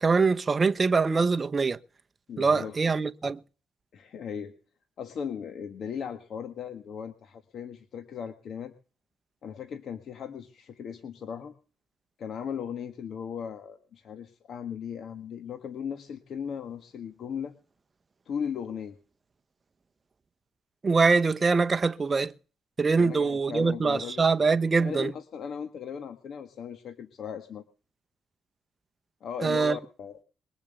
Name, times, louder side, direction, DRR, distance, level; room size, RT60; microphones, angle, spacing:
voice 1, 0.0-1.8 2.4-3.4 20.8-22.3 22.8-25.1 29.4-29.8, right 4 dB, 30° right, 0.9 m, -23 dB
voice 2, 2.3-2.8 3.9-4.5 5.0-8.7 9.4-11.5 12.2-17.5 18.2-19.0 22.9-24.2 24.8-27.6 29.2-30.2, left 7 dB, 65° left, 1.5 m, -37 dB
22.0 x 7.4 x 6.7 m
cardioid pair, 90°, 0 cm